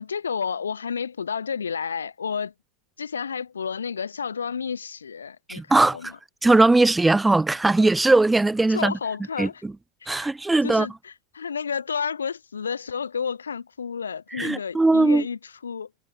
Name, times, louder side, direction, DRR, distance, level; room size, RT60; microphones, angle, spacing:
voice 1, 0.0-2.5 3.0-6.2 8.7-9.6 10.0-10.3 10.6-15.9, left 6 dB, 70° left, 1.5 m, -31 dB
voice 2, 5.5-6.1 6.4-8.9 9.4-9.7 10.1-10.9 14.4-15.2, right 2 dB, 5° right, 0.5 m, -19 dB
figure-of-eight pair, 90°, 0 cm